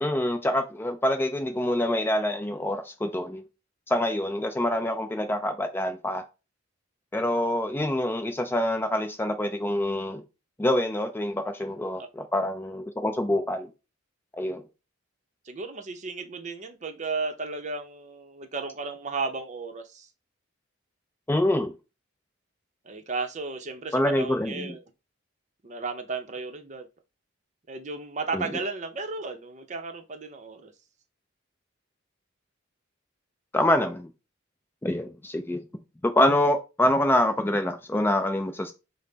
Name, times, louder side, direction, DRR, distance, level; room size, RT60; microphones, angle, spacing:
voice 1, 0.0-3.4 3.9-6.2 7.1-10.2 10.6-13.7 14.4-14.6 21.3-21.7 23.9-24.8 28.3-28.4 33.5-34.1 34.8-35.6 36.0-38.7, left 1 dB, 10° left, 0.4 m, -26 dB
voice 2, 15.4-20.1 22.8-24.8 25.6-26.9 27.7-30.7, right 4 dB, 40° right, 0.6 m, -34 dB
5.5 x 2.0 x 3.8 m
head